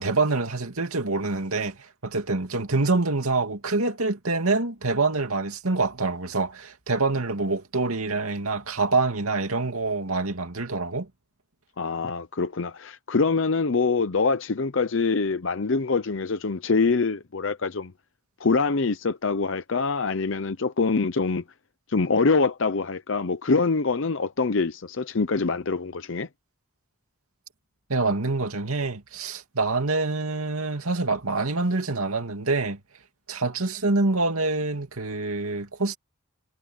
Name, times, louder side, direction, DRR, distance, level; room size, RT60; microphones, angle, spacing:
voice 1, 0.0-1.8 2.0-11.1 27.9-32.8 33.3-36.0, right 3 dB, 90° right, 2.5 m, -26 dB
voice 2, 11.8-17.9 18.4-21.4 21.9-26.3, left 4 dB, 60° left, 0.7 m, -24 dB
head